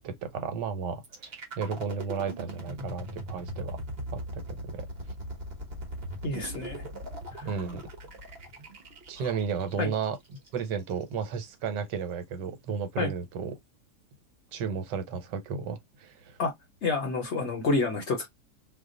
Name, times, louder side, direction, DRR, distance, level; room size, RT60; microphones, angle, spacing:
voice 1, 0.0-3.8 4.1-4.4 4.7-4.9 7.5-7.8 9.1-10.2 10.5-13.5 14.5-16.4, right 6 dB, 85° right, 1.4 m, -33 dB
sound 1, 1.0-11.0, equal, 40° right, 1.0 m, -40 dB
voice 2, 6.2-6.8 7.3-7.5 9.8-9.9 13.0-13.1 16.4-16.5 16.8-18.3, left 3 dB, 55° left, 0.8 m, -28 dB
2.8 x 2.1 x 3.7 m
omnidirectional pair, 1.8 m